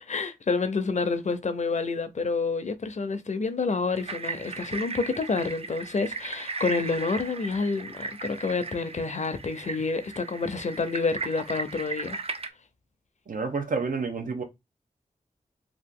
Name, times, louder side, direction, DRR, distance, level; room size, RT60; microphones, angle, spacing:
voice 1, 0.1-12.2, left 4 dB, 55° left, 0.6 m, -28 dB
sound 1, 3.9-12.5, right 4 dB, 45° right, 0.5 m, -37 dB
voice 2, 13.3-14.4, right 4 dB, 75° right, 0.7 m, -29 dB
2.9 x 2.4 x 3.6 m
wide cardioid pair, 65°, 14 cm